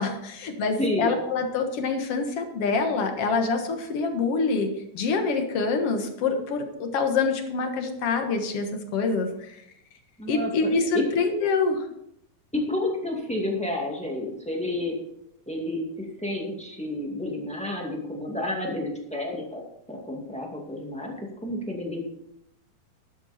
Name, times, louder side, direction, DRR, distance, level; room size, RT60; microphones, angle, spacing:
voice 1, 0.0-4.7 4.9-9.5 10.3-11.9, left 4 dB, 55° left, 5 dB, 2.0 m, -26 dB
voice 2, 0.8-1.1 10.2-10.5 10.9-11.0 12.5-14.9 15.4-19.6 19.9-21.1 21.4-22.0, left 1 dB, 5° left, 0 dB, 1.4 m, -30 dB
12.0 x 10.5 x 4.3 m, 0.77 s
omnidirectional pair, 4.0 m